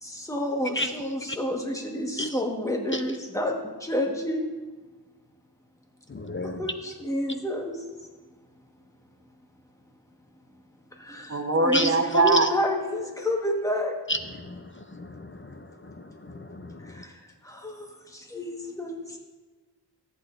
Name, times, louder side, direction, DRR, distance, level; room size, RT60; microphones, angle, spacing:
voice 1, 0.0-4.5 6.4-7.8 10.9-14.0 16.8-19.2, left 1 dB, 5° left, 1 dB, 1.3 m, -30 dB
voice 2, 6.1-6.6 11.7-11.9 12.4-12.5 14.1-17.0, left 1 dB, 30° left, 7 dB, 0.5 m, -33 dB
voice 3, 11.3-12.5, right 3 dB, 35° right, 5 dB, 0.9 m, -22 dB
14.0 x 8.5 x 2.5 m, 1.3 s
wide cardioid pair, 60°, 44 cm